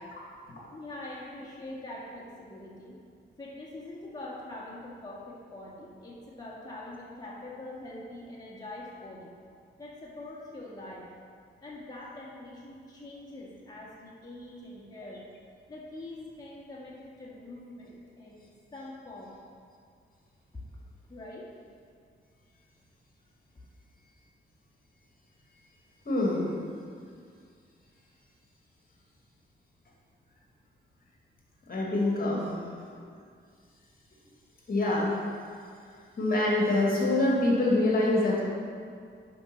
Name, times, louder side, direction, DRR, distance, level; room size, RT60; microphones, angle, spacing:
voice 1, 0.7-3.0 3.4-9.3 9.8-11.1 11.6-15.2 15.7-19.4 20.5-20.8 21.1-21.5, left 2 dB, 20° left, -6 dB, 1.8 m, -44 dB
voice 2, 26.1-26.6 31.6-33.0 34.7-35.2 35.9-38.4, left 2 dB, 45° left, -3 dB, 1.9 m, -26 dB
7.8 x 5.3 x 5.9 m, 2.2 s
cardioid pair, 90°, 21 cm